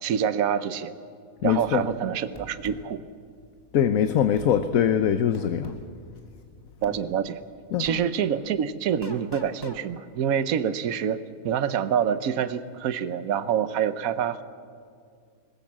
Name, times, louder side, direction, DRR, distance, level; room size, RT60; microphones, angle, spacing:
voice 1, 0.0-0.9 1.4-3.0 6.8-7.4 7.8-11.2 11.4-14.4, right 8 dB, 70° right, 13 dB, 1.2 m, -26 dB
voice 2, 1.4-1.8 3.7-5.7 7.7-7.9, left 9 dB, 70° left, 10 dB, 1.2 m, -22 dB
sound 1, 2.3-2.8 4.3-4.5 5.3-5.9 6.8-7.0 7.8-8.0 9.0-9.8, left 2 dB, 15° left, 1.4 m, -40 dB
20.5 x 20.5 x 7.4 m, 2.2 s
omnidirectional pair, 1.6 m